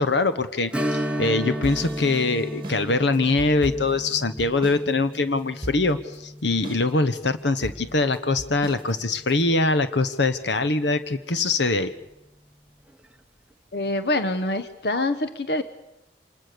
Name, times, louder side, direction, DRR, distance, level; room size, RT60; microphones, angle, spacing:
voice 1, 0.0-11.9, left 3 dB, 85° left, 12 dB, 1.2 m, -23 dB
Strum, 0.7-9.9 10.2-10.3 12.9-13.1 13.5-13.6, equal, 5° right, 1.1 m, -34 dB
sound 1, 1.6-4.9 5.1-5.2 5.6-6.2 6.6-7.2 7.6-9.4, right 1 dB, 30° right, 2.0 m, -38 dB
voice 2, 13.7-15.6, left 2 dB, 60° left, 11 dB, 1.1 m, -25 dB
26.0 x 20.5 x 6.9 m, 0.91 s
head